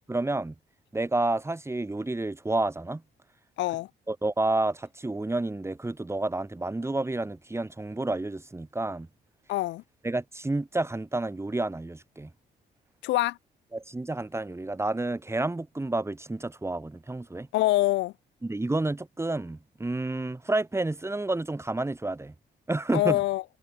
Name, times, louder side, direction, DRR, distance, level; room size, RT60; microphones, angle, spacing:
voice 1, 0.1-0.5 0.9-3.0 4.1-9.1 10.0-12.3 13.7-17.5 18.4-22.3 22.7-23.2, right 2 dB, 15° right, 2.5 m, -30 dB
voice 2, 3.6-3.9 9.5-9.8 13.0-13.4 17.5-18.1 22.9-23.4, left 17 dB, 90° left, 0.7 m, -25 dB
cardioid pair, 85°, 18 cm